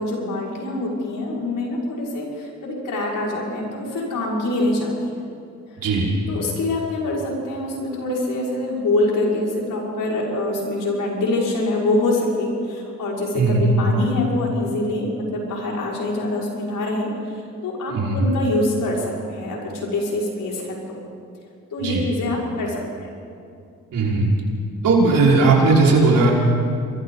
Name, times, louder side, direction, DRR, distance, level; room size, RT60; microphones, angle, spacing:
voice 1, 0.0-5.1 6.3-20.8 21.7-23.1, left 2 dB, 75° left, -4 dB, 6.1 m, -25 dB
voice 2, 13.3-13.7 17.9-18.2 21.8-22.0 23.9-24.3 24.8-26.3, right 3 dB, 80° right, -4 dB, 5.5 m, -17 dB
27.5 x 23.0 x 4.2 m, 2.5 s
cardioid pair, 70°, 32 cm